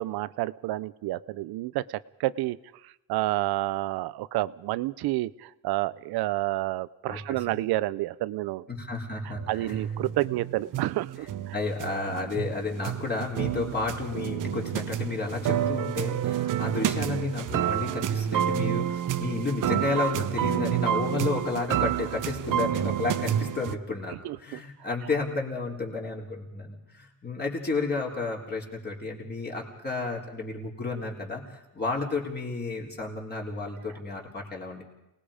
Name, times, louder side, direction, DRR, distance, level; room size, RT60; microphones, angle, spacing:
voice 1, 0.0-2.6 2.8-8.6 9.5-11.5 24.2-24.6, right 17 dB, 90° right, 18 dB, 0.7 m, -29 dB
voice 2, 7.1-7.6 8.7-9.8 11.5-34.8, left 3 dB, 25° left, -1 dB, 3.8 m, -32 dB
sound 1, 9.3-23.8, right 10 dB, 55° right, 0.9 m, -29 dB
28.5 x 19.5 x 5.1 m, 0.91 s
cardioid pair, 120°, 37 cm